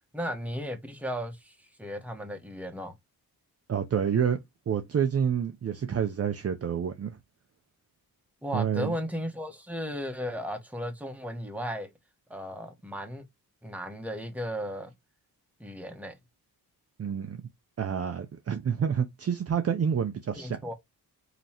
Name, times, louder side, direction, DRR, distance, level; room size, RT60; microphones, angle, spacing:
voice 1, 0.1-2.9 8.4-11.9 12.3-13.2 13.6-14.9 15.6-16.1 20.4-20.7, equal, 5° right, 1.0 m, -35 dB
voice 2, 3.7-4.4 4.7-7.2 8.5-9.0 17.0-17.4 17.8-20.6, right 7 dB, 40° right, 0.6 m, -28 dB
5.3 x 3.0 x 2.9 m
wide cardioid pair, 130°, 38 cm